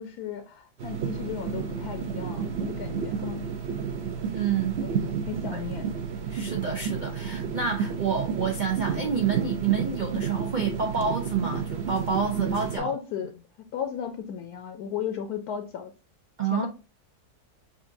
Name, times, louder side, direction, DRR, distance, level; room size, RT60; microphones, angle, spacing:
voice 1, 0.0-3.5 4.8-4.9 5.3-5.9 12.8-13.3 13.7-15.9 16.5-16.7, left 8 dB, 75° left, 1.1 m, -34 dB
sound 1, 0.8-12.8, right 6 dB, 60° right, 0.7 m, -31 dB
voice 2, 4.3-4.8 5.5-5.6 6.3-12.9 16.4-16.7, right 6 dB, 85° right, 0.4 m, -28 dB
6.5 x 2.5 x 2.6 m
omnidirectional pair, 1.7 m